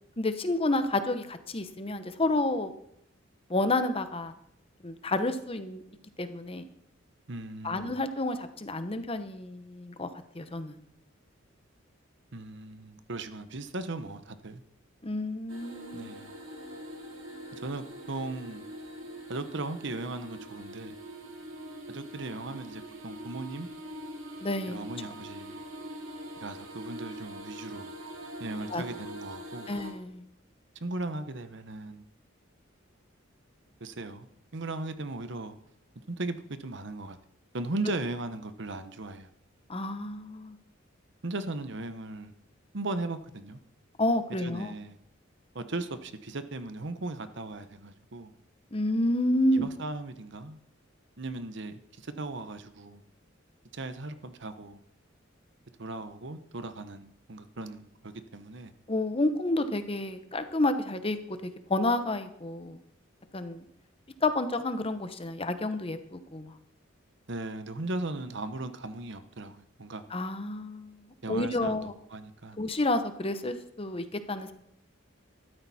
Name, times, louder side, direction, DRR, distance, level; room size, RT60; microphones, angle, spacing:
voice 1, 0.2-2.7 3.5-4.3 4.8-5.8 6.2-6.7 7.6-10.1 10.3-10.8 15.0-16.1 24.4-24.8 28.7-28.8 29.7-30.2 39.7-40.6 44.0-44.7 48.7-49.7 58.9-62.8 63.3-63.6 64.2-66.5 70.1-71.0 71.3-71.9 72.6-74.5, left 2 dB, 30° left, 1.0 m, -30 dB
voice 2, 7.3-8.0 12.3-14.6 15.9-16.3 17.6-18.6 19.3-21.0 21.9-23.7 24.7-25.6 26.4-27.9 28.4-29.7 30.8-32.1 33.8-34.3 34.5-35.5 36.1-37.2 37.5-39.3 41.2-42.3 42.7-43.6 44.4-45.0 45.5-48.3 49.5-50.6 51.2-53.0 53.7-54.8 55.8-58.7 67.3-70.0 71.2-72.6, right 2 dB, 60° right, 1.0 m, -37 dB
sound 1, 15.5-29.9, equal, 80° right, 2.9 m, -43 dB
14.0 x 12.5 x 4.3 m
head